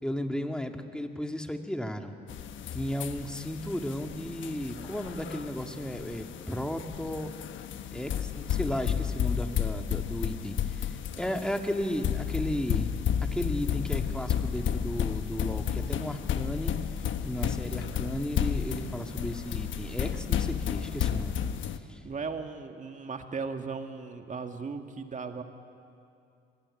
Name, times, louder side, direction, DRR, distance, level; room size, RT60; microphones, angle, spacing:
voice 1, 0.0-2.2 2.7-7.3 7.9-16.7 17.2-21.4 21.9-22.0, equal, 5° left, 5 dB, 2.1 m, -34 dB
sound 1, 2.3-21.8, left 8 dB, 75° left, 1.3 m, -32 dB
voice 2, 22.0-25.4, right 5 dB, 40° right, 6 dB, 2.1 m, -37 dB
24.5 x 19.5 x 9.9 m, 2.5 s
cardioid pair, 90°, 20 cm